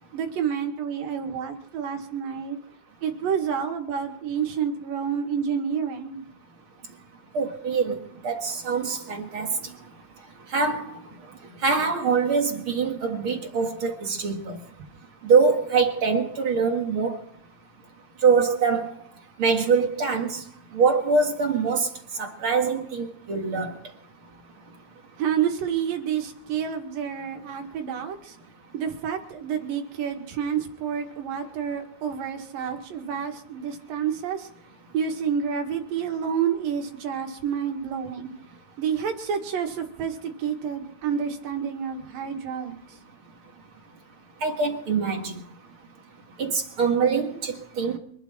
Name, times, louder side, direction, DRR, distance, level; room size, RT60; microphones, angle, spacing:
voice 1, 0.1-2.6 3.0-6.2 25.2-28.4 28.7-34.5 34.9-38.3 38.8-43.0, right 7 dB, 70° right, 4 dB, 3.5 m, -29 dB
voice 2, 7.3-8.0 8.2-9.5 10.5-10.8 11.6-14.6 15.2-17.2 18.2-18.9 19.4-20.4 20.7-21.9 22.2-23.7 44.4-45.3 46.4-48.0, right 5 dB, 45° right, 4 dB, 2.1 m, -23 dB
25.0 x 12.0 x 4.4 m, 0.68 s
omnidirectional pair, 4.2 m